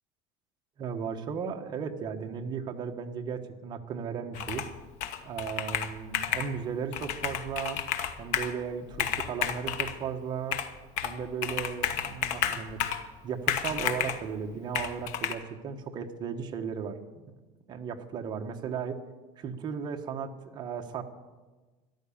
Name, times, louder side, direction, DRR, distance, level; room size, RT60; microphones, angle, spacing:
voice 1, 0.8-4.7 5.2-7.8 8.2-10.6 11.0-12.8 13.2-17.3 17.7-19.0 19.4-21.0, right 6 dB, 35° right, 4 dB, 1.2 m, -35 dB
Computer keyboard, 4.3-4.7 5.0-6.5 6.9-8.5 8.9-10.0 10.5-11.2 11.4-13.1 13.5-14.2 14.7-15.3, left 9 dB, 65° left, 1.2 m, -31 dB
13.5 x 11.5 x 7.1 m, 1.3 s
cardioid pair, 160°, 13 cm